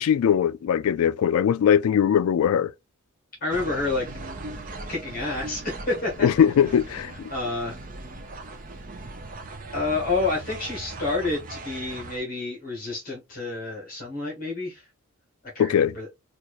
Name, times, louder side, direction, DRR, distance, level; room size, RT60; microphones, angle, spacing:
voice 1, 0.0-2.7 6.2-7.1 15.6-16.0, left 8 dB, 80° left, 0.3 m, -20 dB
voice 2, 3.4-4.1 4.9-6.4 7.3-7.8 9.7-14.9 15.5-16.1, left 3 dB, 40° left, 1.3 m, -29 dB
sound 1, 3.5-12.2, right 2 dB, 35° right, 0.5 m, -39 dB
4.3 x 2.5 x 2.4 m
head